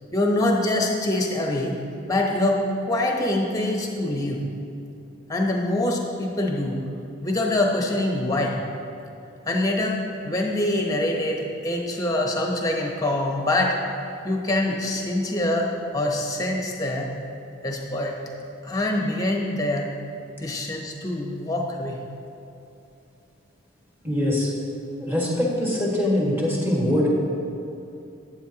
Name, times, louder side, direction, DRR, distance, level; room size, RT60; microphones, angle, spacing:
voice 1, 0.1-1.8 2.1-2.6 2.9-4.4 5.3-6.8 7.2-8.6 9.5-10.0 10.2-13.8 14.2-17.1 17.6-18.2 18.6-19.9 20.4-22.0, left 1 dB, 15° left, 0 dB, 1.0 m, -24 dB
voice 2, 24.0-24.5 25.0-27.1, left 1 dB, 10° right, -5 dB, 1.6 m, -23 dB
12.5 x 8.7 x 2.9 m, 2.8 s
head